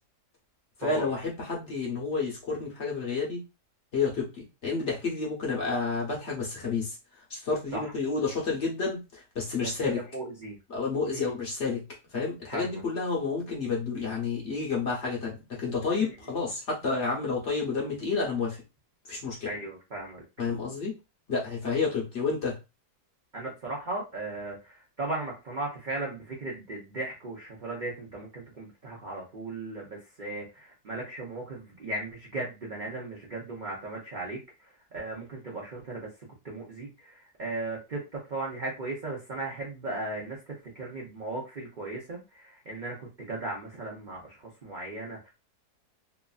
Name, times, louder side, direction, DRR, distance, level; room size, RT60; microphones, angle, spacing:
voice 1, 0.8-3.4 3.9-7.0 7.3-10.0 10.7-11.8 12.1-18.6 19.1-19.5 20.4-20.9 21.3-22.6, left 4 dB, 50° left, -2 dB, 1.0 m, -30 dB
voice 2, 10.1-10.6 11.1-11.3 12.5-12.8 16.0-16.1 19.5-20.2 23.3-34.4 34.9-36.1 36.4-45.3, right 2 dB, 50° right, -3 dB, 0.5 m, -37 dB
3.0 x 2.4 x 2.3 m, 0.27 s
omnidirectional pair, 1.8 m